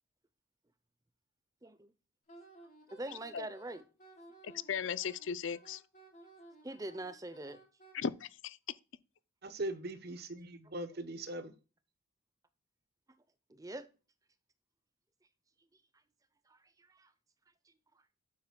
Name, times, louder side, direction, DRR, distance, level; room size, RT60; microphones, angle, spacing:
voice 1, 1.6-1.9 2.9-3.8 6.6-7.6 13.5-13.9 16.5-17.1, right 1 dB, 15° right, 0.6 m, -43 dB
Wind instrument woodwind instrument, 2.3-7.9, right 2 dB, 35° left, 2.9 m, -57 dB
voice 2, 4.4-5.8 7.9-8.6, left 7 dB, 60° left, 0.4 m, -37 dB
voice 3, 9.4-11.5, right 1 dB, 45° right, 0.9 m, -40 dB
8.7 x 7.9 x 2.3 m
head